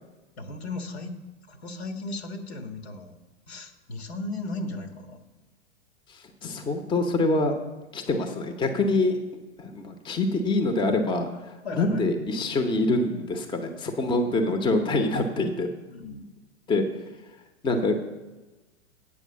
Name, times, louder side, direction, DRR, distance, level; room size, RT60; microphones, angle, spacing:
voice 1, 0.4-3.2 3.5-5.2 11.6-12.1 15.9-16.2, left 2 dB, 65° left, 6 dB, 1.6 m, -36 dB
voice 2, 6.1-7.5 7.9-9.2 9.6-11.4 11.8-15.7 16.7-16.8 17.6-17.9, left 2 dB, 15° left, 7 dB, 0.9 m, -25 dB
8.6 x 6.6 x 6.9 m, 1.1 s
figure-of-eight pair, 100°, 34 cm